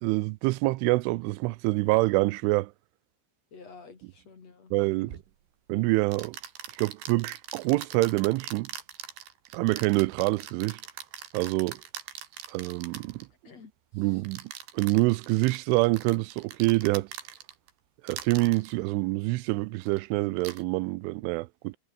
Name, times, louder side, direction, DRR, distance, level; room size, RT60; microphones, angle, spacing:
voice 1, 0.0-2.7 4.7-5.2 5.7-6.4 6.8-8.7 9.5-10.8 11.3-11.8 12.5-13.3 13.9-14.4 14.7-17.1 18.0-21.8, right 22 dB, 90° right, 3.2 m, -26 dB
voice 2, 3.5-5.1 13.4-13.7 14.0-14.2, left 4 dB, 35° left, 4.1 m, -50 dB
sound 1, 5.1-5.3 6.1-13.3 14.3-17.7 18.1-18.7 19.8-20.0 20.4-20.6, right 9 dB, 65° right, 4.5 m, -42 dB
omnidirectional pair, 5.4 m